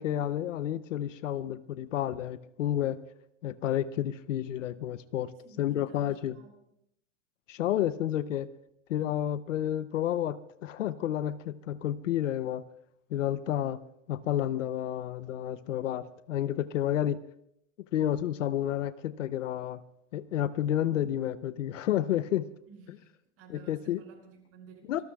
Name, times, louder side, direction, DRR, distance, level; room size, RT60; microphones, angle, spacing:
voice 1, 0.0-3.0 3.4-5.3 5.6-6.4 7.5-8.5 8.9-12.6 13.1-13.8 14.1-17.2 17.9-19.8 20.1-22.5 23.5-24.0 24.9-25.0, left 11 dB, 85° left, 0.7 m, -30 dB
voice 2, 5.4-6.6 22.7-23.1 23.4-25.0, right 4 dB, 40° right, 5.6 m, -54 dB
26.0 x 19.5 x 2.3 m
hypercardioid pair, 120°, 37 cm